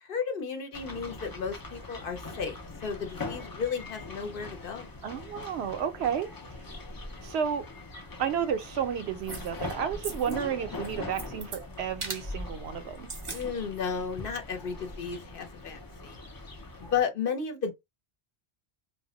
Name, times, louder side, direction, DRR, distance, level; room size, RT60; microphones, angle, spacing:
voice 1, 0.0-4.9 10.2-10.6 13.3-16.2 16.8-17.8, left 6 dB, 60° left, 0.8 m, -33 dB
sound 1, 0.7-17.0, left 2 dB, 35° left, 0.3 m, -42 dB
voice 2, 5.0-6.3 7.2-7.7 8.2-13.1, right 8 dB, 80° right, 0.8 m, -31 dB
sound 2, 9.3-9.7 10.0-10.4 10.7-11.6 12.0-12.3 12.9-13.4 13.8-13.9, right 4 dB, 40° right, 0.5 m, -39 dB
2.2 x 2.1 x 3.8 m
omnidirectional pair, 1.1 m